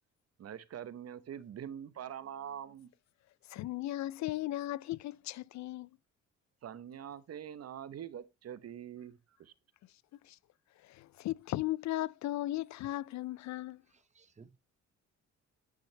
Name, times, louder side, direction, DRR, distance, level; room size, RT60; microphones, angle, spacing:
voice 1, 0.4-2.9 6.6-9.5, right 9 dB, 55° right, 1.0 m, -44 dB
voice 2, 3.5-5.9 10.2-10.4 10.8-13.8, left 15 dB, 65° left, 0.4 m, -36 dB
voice 3, 13.9-14.6, right 4 dB, 25° right, 0.7 m, -59 dB
10.0 x 6.3 x 3.2 m
cardioid pair, 90°, 30 cm